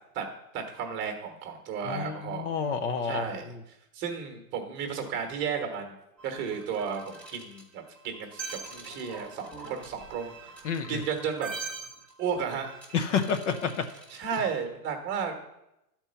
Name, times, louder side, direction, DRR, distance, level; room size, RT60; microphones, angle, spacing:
voice 1, 0.5-2.5 3.0-3.5 3.9-5.9 6.2-10.6 10.9-11.5 12.2-12.7 14.1-15.3, right 6 dB, 25° right, 5 dB, 1.2 m, -33 dB
voice 2, 1.8-3.6 10.6-11.0 12.9-13.9, left 6 dB, 50° left, 9 dB, 0.8 m, -29 dB
sound 1, 6.2-14.6, right 4 dB, 5° left, 0.7 m, -44 dB
11.0 x 4.4 x 6.8 m, 0.87 s
supercardioid pair, 155°, 48 cm